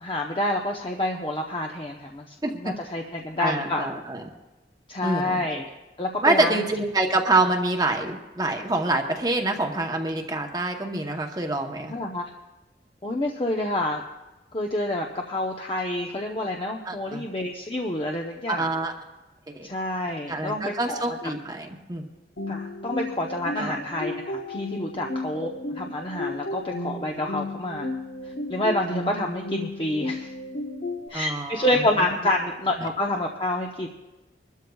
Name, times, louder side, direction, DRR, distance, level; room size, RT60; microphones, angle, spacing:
voice 1, 0.0-3.9 4.9-5.7 6.0-6.6 11.9-12.2 13.0-14.0 14.5-18.7 19.6-21.3 22.5-27.9 28.5-30.3 31.1-33.9, left 1 dB, 30° left, 1 dB, 0.8 m, -28 dB
voice 2, 3.4-4.2 5.0-5.4 6.2-11.9 16.9-17.2 18.5-18.9 19.5-19.7 20.3-22.0 23.6-23.7 25.3-25.5 31.1-31.7, right 2 dB, 20° right, 2 dB, 0.9 m, -26 dB
sound 1, 22.4-31.1, left 2 dB, 70° left, 1.1 m, -33 dB
26.0 x 13.0 x 2.3 m, 1.1 s
head